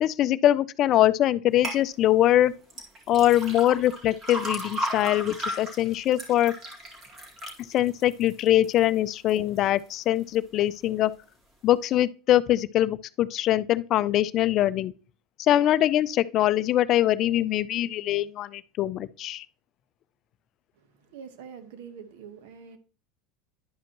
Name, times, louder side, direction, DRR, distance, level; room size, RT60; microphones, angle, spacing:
voice 1, 0.0-2.5 3.1-6.5 7.7-11.1 11.6-14.9 15.5-19.4, left 13 dB, 45° left, 0.4 m, -23 dB
sound 1, 1.6-1.8 2.7-8.8 9.3-9.8 10.3-10.4, equal, 30° right, 2.1 m, -35 dB
voice 2, 21.0-22.8, right 7 dB, 80° right, 1.1 m, -44 dB
11.0 x 5.1 x 2.9 m
supercardioid pair, 130°, 0 cm